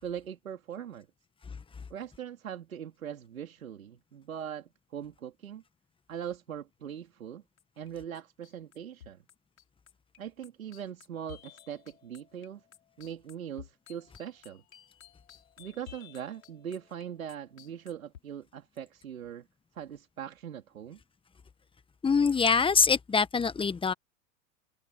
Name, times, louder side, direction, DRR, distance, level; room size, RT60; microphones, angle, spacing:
voice 1, 0.0-1.1 1.9-5.6 6.1-7.4 7.8-9.2 10.2-12.6 13.0-14.6 15.6-19.5 19.7-21.0, right 9 dB, 85° right, 3.3 m, -41 dB
sound 1, 7.6-7.9 8.1-18.2, left 10 dB, 80° left, 5.6 m, -54 dB
voice 2, 22.0-23.9, left 5 dB, 15° left, 1.4 m, -24 dB
hypercardioid pair, 105°, 40 cm